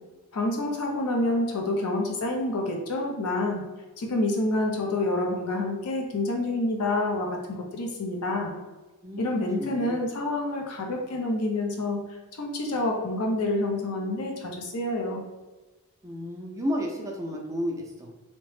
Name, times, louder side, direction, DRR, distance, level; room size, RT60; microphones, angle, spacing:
voice 1, 0.3-3.6 4.0-8.5 9.2-15.2, left 2 dB, 85° left, 1 dB, 0.6 m, -28 dB
voice 2, 9.0-10.0 16.0-18.1, equal, 15° right, 0 dB, 0.4 m, -32 dB
2.8 x 2.1 x 3.1 m, 1.2 s
head